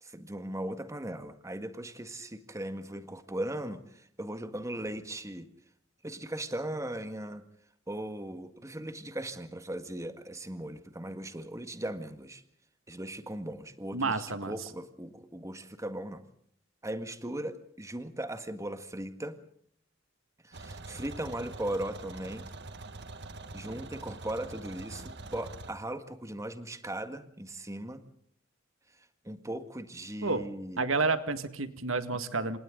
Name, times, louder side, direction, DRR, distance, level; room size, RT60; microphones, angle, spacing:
voice 1, 0.0-5.5 6.0-7.4 7.9-12.4 12.9-14.2 14.4-16.2 16.8-19.4 20.4-22.5 23.5-28.0 29.2-30.8 32.1-32.3, right 1 dB, 15° right, 9 dB, 1.8 m, -38 dB
voice 2, 13.9-14.6 30.2-30.5 30.8-32.6, right 3 dB, 85° right, 11 dB, 1.9 m, -30 dB
sound 1, 20.5-25.7, right 3 dB, 60° right, 1.8 m, -44 dB
28.0 x 26.5 x 3.9 m, 0.64 s
head